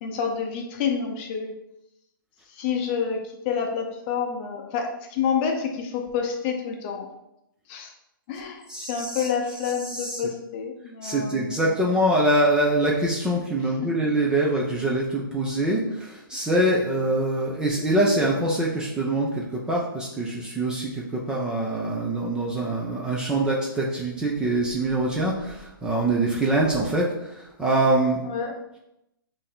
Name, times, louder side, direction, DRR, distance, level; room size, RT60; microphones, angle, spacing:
voice 1, 0.0-1.5 2.5-7.1 7.7-7.9 8.3-11.4 28.2-28.5, left 6 dB, 30° left, 2 dB, 0.7 m, -28 dB
voice 2, 8.7-9.3 9.8-10.2 11.0-28.3, right 1 dB, 5° right, -4 dB, 0.5 m, -24 dB
5.3 x 2.7 x 3.5 m, 0.85 s
hypercardioid pair, 150°, 12 cm